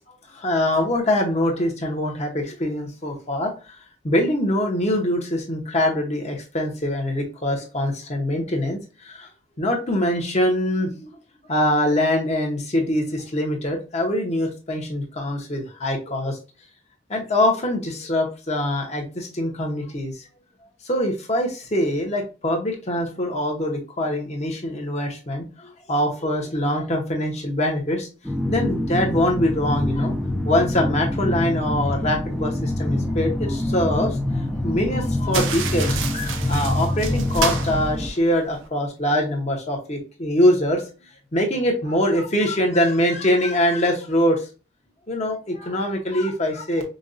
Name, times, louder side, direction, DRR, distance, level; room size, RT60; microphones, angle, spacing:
voice 1, 0.1-3.8 4.0-9.3 9.6-11.1 11.5-16.4 17.1-20.2 20.8-28.1 28.5-30.1 30.4-40.8 41.3-44.5 45.1-46.8, left 1 dB, 35° left, 1 dB, 0.9 m, -23 dB
sound 1, 28.2-38.1, left 1 dB, 5° left, 0.4 m, -25 dB
sound 2, 35.3-38.7, right 5 dB, 80° right, 0.6 m, -30 dB
5.2 x 2.3 x 2.5 m, 0.33 s
head